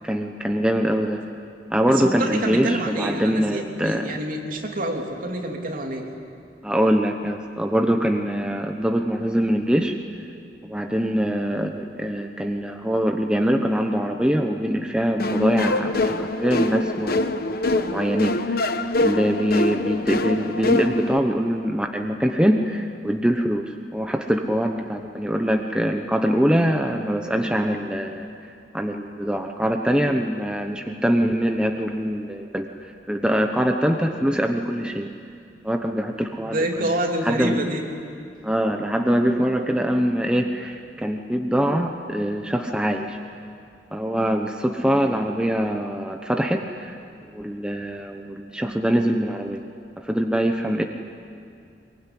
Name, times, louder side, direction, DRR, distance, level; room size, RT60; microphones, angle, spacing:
voice 1, 0.0-1.2 1.7-4.1 6.6-10.3 10.6-28.3 28.7-35.1 35.6-36.9 37.2-37.6 38.4-43.2 43.9-47.0 47.3-49.6 50.0-50.8, equal, 5° right, 3 dB, 1.0 m, -23 dB
voice 2, 2.0-6.0 36.4-37.8, right 1 dB, 50° right, 1 dB, 3.2 m, -27 dB
sound 1, 15.2-21.2, left 2 dB, 60° left, 1.1 m, -24 dB
22.5 x 22.5 x 9.9 m, 2.4 s
head